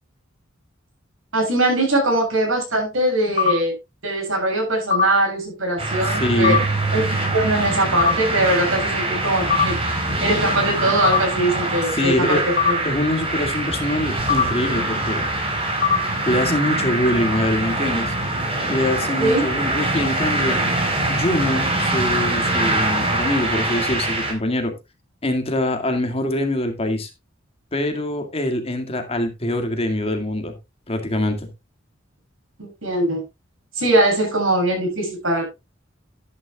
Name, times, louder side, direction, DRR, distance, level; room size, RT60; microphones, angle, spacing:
voice 1, 1.3-3.7 4.0-6.6 6.9-7.0 7.3-12.8 19.2-19.5 32.6-33.2 33.8-35.5, right 1 dB, 85° right, 7.2 m, -21 dB
sound 1, 3.4-3.5 4.9-5.0 6.4-6.6 8.0-8.1 9.5-9.6 11.0-11.2 12.6-12.7 14.3-14.4 15.8-16.0, left 7 dB, 50° left, 2.7 m, -17 dB
sound 2, 5.8-24.3, right 2 dB, 30° right, 4.2 m, -23 dB
voice 2, 6.0-6.7 11.9-12.4 12.8-15.3 16.3-18.1 18.7-20.6 21.1-24.8 25.2-27.1 27.7-30.5 30.9-31.5, left 1 dB, 30° left, 2.1 m, -24 dB
12.0 x 11.0 x 2.4 m
head